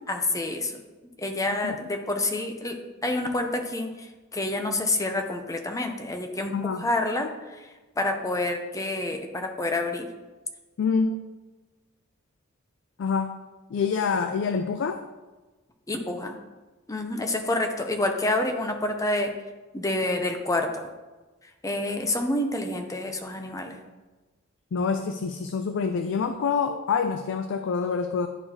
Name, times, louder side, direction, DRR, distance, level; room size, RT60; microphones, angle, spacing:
voice 1, 0.1-0.7 1.2-3.9 4.3-7.3 8.0-10.1 15.9-16.3 16.9-19.3 19.7-20.9 21.6-23.8, left 2 dB, 15° left, 5 dB, 0.6 m, -28 dB
voice 2, 6.5-6.9 10.8-11.2 13.0-13.4 13.7-15.0 24.7-28.3, left 5 dB, 60° left, 8 dB, 0.4 m, -26 dB
11.0 x 4.4 x 2.9 m, 1.2 s
head